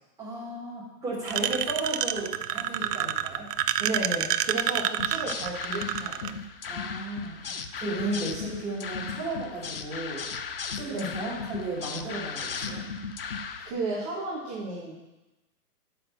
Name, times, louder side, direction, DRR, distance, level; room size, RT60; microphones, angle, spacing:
voice 1, 0.2-3.5 6.7-7.4 7.8-10.2 10.7-12.8, right 2 dB, 5° right, -9 dB, 3.5 m, -34 dB
sound 1, 1.3-6.3, right 11 dB, 85° right, 0.6 m, -28 dB
voice 2, 3.8-6.3 10.9-11.1 13.7-14.9, right 2 dB, 25° right, -4 dB, 1.3 m, -33 dB
sound 2, 5.0-13.7, left 5 dB, 40° left, 0.4 m, -36 dB
6.8 x 5.6 x 7.2 m, 0.99 s
hypercardioid pair, 165°, 47 cm